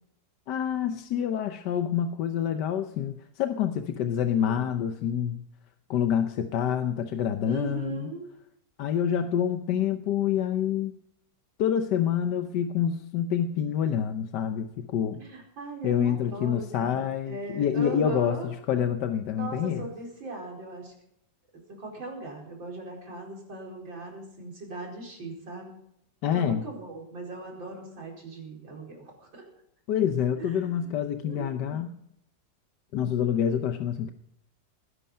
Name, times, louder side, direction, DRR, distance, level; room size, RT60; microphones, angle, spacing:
voice 1, 0.5-5.4 5.9-8.1 8.8-10.9 11.6-15.2 15.8-19.9 26.2-26.6 29.9-31.9 32.9-34.1, left 9 dB, 70° left, 8 dB, 1.4 m, -27 dB
voice 2, 4.3-4.7 7.4-8.3 15.1-18.5 19.4-20.9 21.7-25.8 26.3-29.5 30.4-30.9 31.2-31.9, right 3 dB, 90° right, -1 dB, 5.2 m, -39 dB
20.0 x 11.0 x 5.5 m, 0.76 s
omnidirectional pair, 2.0 m